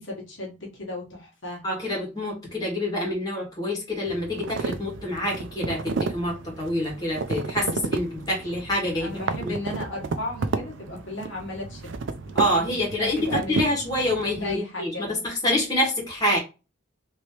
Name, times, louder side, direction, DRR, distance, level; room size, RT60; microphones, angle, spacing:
voice 1, 0.0-1.6 9.0-13.6 14.4-15.2, left 1 dB, 75° left, 1.3 m, -35 dB
voice 2, 1.6-9.2 9.4-9.5 12.3-16.4, left 1 dB, 20° left, 1.5 m, -26 dB
sound 1, 4.1-14.5, right 4 dB, 75° right, 0.4 m, -32 dB
3.1 x 2.9 x 2.9 m
head